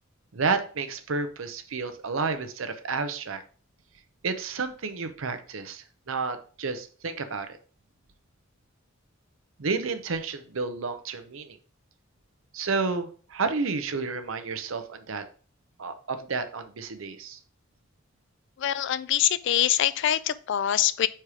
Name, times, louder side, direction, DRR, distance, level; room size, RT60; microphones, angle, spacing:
voice 1, 0.3-3.4 4.2-7.6 9.6-11.6 12.5-15.2 15.8-17.4, right 4 dB, 85° right, 9 dB, 0.7 m, -31 dB
voice 2, 18.6-21.1, left 11 dB, 65° left, 17 dB, 0.3 m, -24 dB
4.9 x 4.4 x 4.8 m, 0.42 s
head